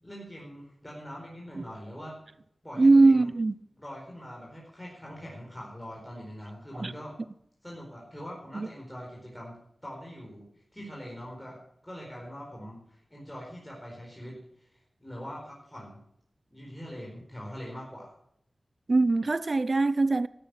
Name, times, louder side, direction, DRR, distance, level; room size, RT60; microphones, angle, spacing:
voice 1, 0.0-2.2 2.6-3.2 3.8-7.1 7.6-16.0 16.5-18.1, equal, 10° left, 4.6 m, -43 dB
voice 2, 2.8-3.5 6.8-6.9 8.5-8.7 18.9-20.3, right 3 dB, 50° right, 0.6 m, -21 dB
13.0 x 9.9 x 7.9 m
wide cardioid pair, 65°, 0 cm